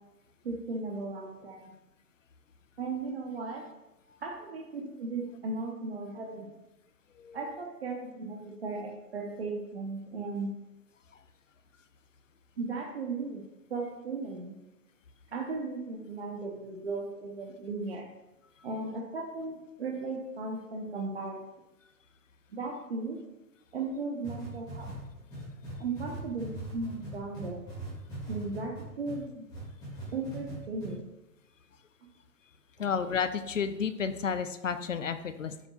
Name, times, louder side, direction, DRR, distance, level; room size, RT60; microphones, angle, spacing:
voice 1, 0.4-1.6 2.8-3.6 4.2-6.5 7.3-10.5 12.6-13.4 13.7-14.6 15.3-18.1 18.6-21.4 22.5-23.2 23.7-24.9 25.8-27.6 28.3-29.4 30.1-31.0 32.8-32.9, right 3 dB, 40° right, -1 dB, 0.8 m, -36 dB
sound 1, 24.2-29.2 29.5-30.5 30.8-30.9, right 1 dB, 10° left, 2.1 m, -41 dB
voice 2, 32.8-35.7, left 6 dB, 55° left, 11 dB, 0.5 m, -31 dB
7.0 x 6.8 x 2.3 m, 1.0 s
hypercardioid pair, 160°, 49 cm